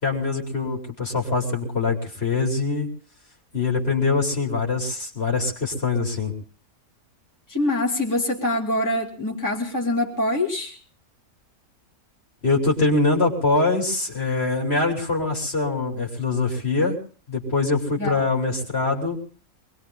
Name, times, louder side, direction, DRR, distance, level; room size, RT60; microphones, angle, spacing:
voice 1, 0.0-2.9 3.5-6.3 12.4-17.0 17.3-19.2, left 3 dB, 45° left, 0 dB, 3.3 m, -23 dB
voice 2, 7.5-10.8 18.0-18.3, left 1 dB, 10° left, -1 dB, 2.4 m, -24 dB
25.0 x 21.0 x 2.3 m, 0.41 s
omnidirectional pair, 1.5 m